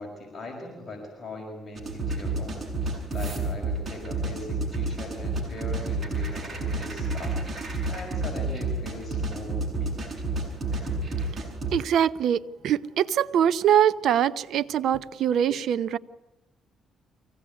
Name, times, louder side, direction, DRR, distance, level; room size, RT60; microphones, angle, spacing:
voice 1, 0.0-2.7 3.1-7.4 7.9-10.0, left 2 dB, 35° left, 5.8 m, -40 dB
sound 1, 1.8-11.7, right 2 dB, 30° right, 7.6 m, -30 dB
voice 2, 11.7-16.0, right 9 dB, 70° right, 0.8 m, -23 dB
24.5 x 17.5 x 9.7 m
cardioid pair, 115°, 0 cm